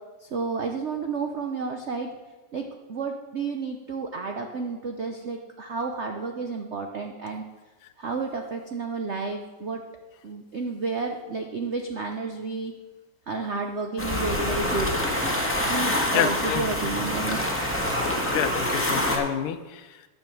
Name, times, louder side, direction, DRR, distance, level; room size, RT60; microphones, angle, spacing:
voice 1, 0.2-2.1 2.5-7.4 8.0-9.8 10.2-12.7 13.3-14.9 15.7-17.4, right 4 dB, 85° right, 4 dB, 0.6 m, -31 dB
sound 1, 14.0-19.2, left 1 dB, 5° left, 1.4 m, -26 dB
voice 2, 16.1-16.6 18.3-20.1, left 9 dB, 85° left, 10 dB, 1.7 m, -28 dB
10.5 x 7.0 x 7.0 m, 1.2 s
omnidirectional pair, 2.4 m